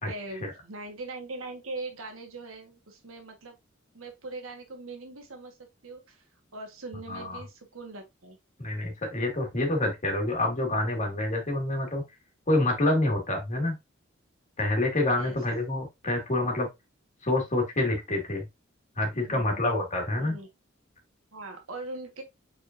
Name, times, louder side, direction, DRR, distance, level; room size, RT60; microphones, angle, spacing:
voice 1, 0.1-3.6 3.9-5.6 5.8-6.2 6.5-8.4 15.1-15.4 16.4-16.6 19.1-19.6 20.2-20.5 21.3-22.2, right 2 dB, 85° right, 1.4 m, -41 dB
voice 2, 7.1-7.4 8.6-12.0 12.5-13.7 14.6-16.7 17.2-18.4 19.0-20.4, left 2 dB, 35° left, 1.9 m, -27 dB
5.0 x 4.2 x 2.5 m
head